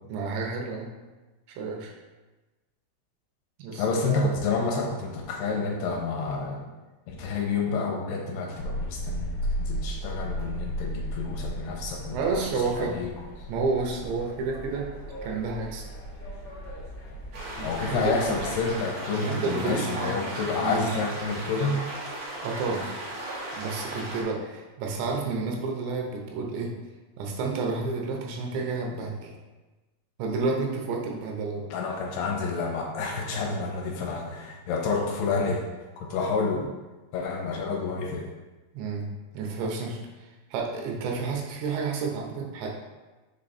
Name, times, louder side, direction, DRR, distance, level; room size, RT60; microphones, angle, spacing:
voice 1, 0.1-0.9 1.6-1.9 3.6-4.3 12.1-13.0 13.5-14.9 15.2-15.8 17.6-18.4 19.2-20.1 20.6-20.8 22.4-22.9 23.6-26.7 27.2-29.3 30.2-31.7 38.7-40.0 40.5-42.7, right 4 dB, 90° right, 0 dB, 3.2 m, -30 dB
voice 2, 3.8-6.7 7.1-12.4 12.8-13.1 17.6-21.8 31.7-35.7 36.0-36.7 37.1-38.3, left 4 dB, 80° left, -1 dB, 2.6 m, -29 dB
sound 1, 8.6-18.8, equal, 60° left, 1.2 m, -35 dB
sound 2, 17.3-24.2, right 1 dB, 65° right, 3.1 m, -36 dB
7.0 x 3.3 x 4.1 m, 1.2 s
omnidirectional pair, 5.0 m